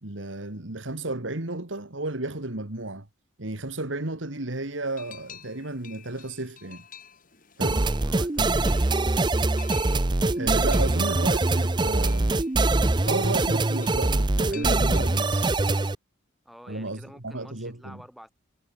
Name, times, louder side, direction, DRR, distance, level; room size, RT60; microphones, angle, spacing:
voice 1, 0.0-3.1 3.4-6.8 7.6-7.8 10.3-12.4 13.0-15.5 16.7-18.0, right 2 dB, 75° right, 2.4 m, -33 dB
sound 1, 4.9-15.6, left 8 dB, 45° left, 7.5 m, -50 dB
voice 2, 7.6-9.0 16.4-18.3, equal, ahead, 5.9 m, -48 dB
sound 2, 7.6-16.0, right 2 dB, 25° right, 0.6 m, -23 dB
head